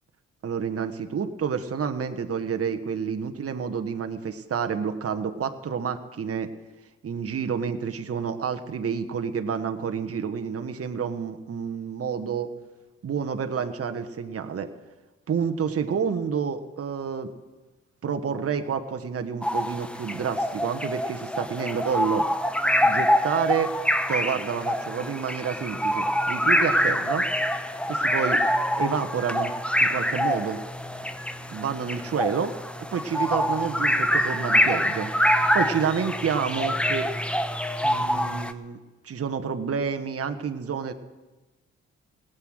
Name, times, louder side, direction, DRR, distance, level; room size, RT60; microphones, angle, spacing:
voice 1, 0.4-6.5 7.0-12.5 13.0-14.7 15.3-17.3 18.0-22.2 22.8-23.7 24.1-27.2 27.9-28.4 28.8-29.5 29.8-30.6 31.5-32.5 32.9-35.1 35.5-37.1 37.8-38.8 39.0-40.9, right 6 dB, 45° right, 7 dB, 1.2 m, -29 dB
sound 1, 19.4-38.5, equal, 5° left, 0.9 m, -25 dB
18.0 x 8.0 x 6.4 m, 1.2 s
supercardioid pair, 50°, 31 cm